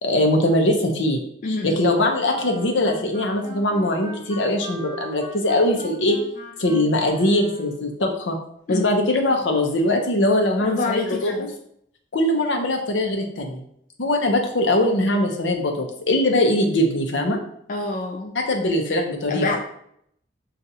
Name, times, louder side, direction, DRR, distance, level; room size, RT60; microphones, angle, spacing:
voice 1, 0.0-6.2 6.6-8.4 8.7-11.5 12.1-13.6 14.0-17.4 18.3-19.6, left 1 dB, 80° left, 3 dB, 0.7 m, -21 dB
voice 2, 1.4-1.8 8.7-9.0 10.6-11.5 17.7-18.3 19.3-19.6, left 3 dB, 45° left, 1 dB, 0.3 m, -27 dB
sound 1, 2.2-7.9, right 1 dB, 25° right, 0.8 m, -39 dB
5.4 x 2.5 x 2.7 m, 0.71 s
head